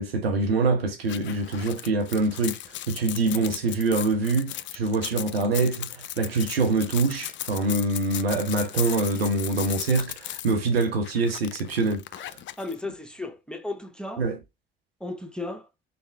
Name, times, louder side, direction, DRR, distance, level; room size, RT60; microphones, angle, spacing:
voice 1, 0.0-12.4 14.2-14.4, right 3 dB, 90° right, 1.0 m, -25 dB
sound 1, 1.1-12.8, left 13 dB, 40° left, 0.4 m, -36 dB
voice 2, 12.6-14.2 15.0-15.7, left 2 dB, 5° left, 1.0 m, -35 dB
4.2 x 3.5 x 3.3 m
hypercardioid pair, 55°, 29 cm